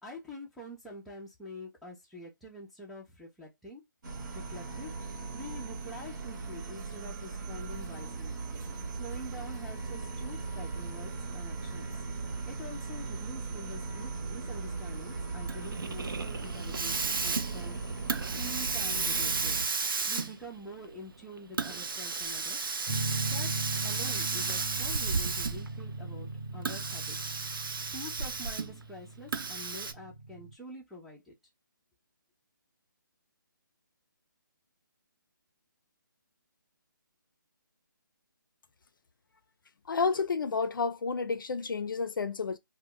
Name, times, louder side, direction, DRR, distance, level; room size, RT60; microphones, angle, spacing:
voice 1, 0.0-3.8 4.3-4.9 5.3-8.4 8.9-11.9 12.5-17.8 18.3-19.6 20.1-22.7 23.3-23.5 23.8-27.4 27.9-31.3, equal, ahead, 0.4 m, -46 dB
sound 1, 4.0-19.6, right 4 dB, 60° right, 1.0 m, -38 dB
Hiss, 15.5-25.8 26.5-28.8 29.3-29.9, right 4 dB, 90° right, 0.4 m, -33 dB
sound 2, 22.9-30.5, right 2 dB, 25° right, 0.8 m, -39 dB
voice 2, 39.9-42.6, left 5 dB, 75° left, 0.4 m, -30 dB
2.1 x 2.1 x 3.6 m
hypercardioid pair, 160°, 11 cm